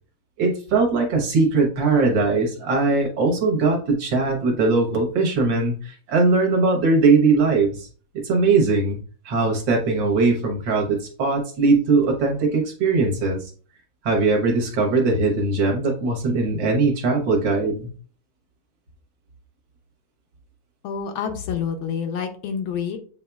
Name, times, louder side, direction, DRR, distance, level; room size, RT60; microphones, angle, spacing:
voice 1, 0.4-7.9 8.2-9.0 9.3-13.4 14.0-17.9, right 3 dB, 65° right, 1 dB, 1.7 m, -20 dB
voice 2, 20.8-23.0, left 7 dB, 75° left, 6 dB, 1.4 m, -28 dB
8.2 x 2.8 x 2.3 m, 0.42 s
omnidirectional pair, 2.3 m